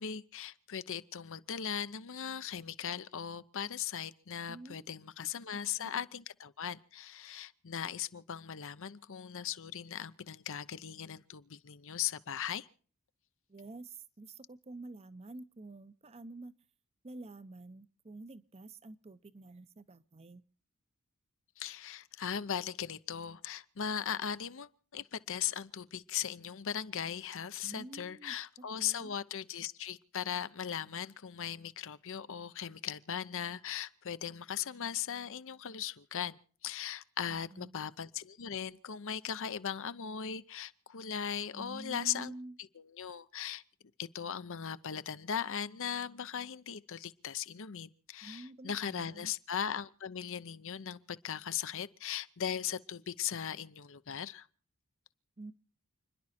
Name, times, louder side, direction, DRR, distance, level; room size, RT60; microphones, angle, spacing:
voice 1, 0.0-12.7 21.6-36.4 36.6-42.3 42.8-43.6 44.0-54.5, left 8 dB, 60° left, 0.7 m, -38 dB
voice 2, 4.5-4.9 5.8-6.0 13.5-16.5 17.0-20.4 27.6-29.1 37.3-37.8 41.5-42.6 48.2-49.3 55.4-55.5, right 2 dB, 30° right, 0.7 m, -49 dB
29.5 x 11.0 x 4.2 m
head